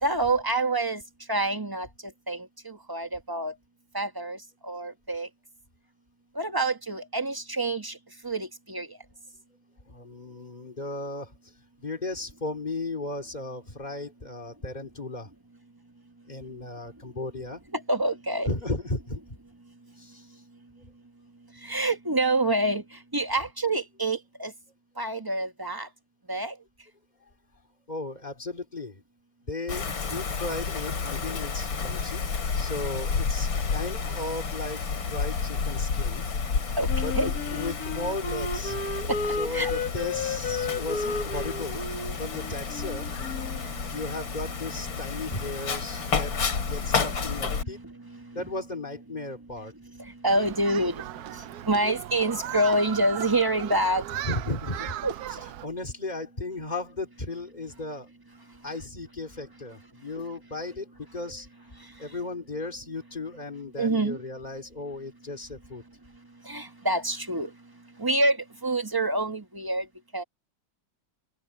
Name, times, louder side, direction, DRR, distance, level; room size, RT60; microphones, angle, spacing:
voice 1, 0.0-1.0 1.3-1.9 2.3-3.5 3.9-4.4 4.6-5.3 6.3-8.0 8.2-8.9 17.7-18.5 21.6-22.8 23.1-24.5 25.0-25.9 26.3-26.5 36.8-36.9 37.1-37.4 39.0-39.7 42.5-42.6 42.9-43.0 43.3-44.1 47.3-47.5 47.8-48.4 50.0-51.0 51.7-54.0 55.0-55.1 63.8-64.2 66.5-67.5 68.0-68.4 68.6-69.9 70.1-70.2, right 2 dB, 15° right, 1.2 m, -27 dB
voice 2, 9.9-11.3 11.8-15.3 16.3-17.6 18.5-19.2 20.0-20.3 27.9-29.0 29.5-32.2 32.5-34.8 35.1-36.2 37.0-37.1 37.5-38.8 39.4-41.9 42.2-43.1 43.9-46.4 46.7-47.8 48.3-49.7 54.2-55.0 55.6-58.1 58.6-61.5 62.0-65.8, left 2 dB, 20° left, 3.3 m, -35 dB
Wind, 29.7-47.6, left 5 dB, 75° left, 3.2 m, -31 dB
Wind instrument woodwind instrument, 36.9-43.6, left 4 dB, 50° left, 2.1 m, -33 dB
Human group actions, 50.3-55.7, right 12 dB, 75° right, 0.9 m, -37 dB
open air
omnidirectional pair, 2.2 m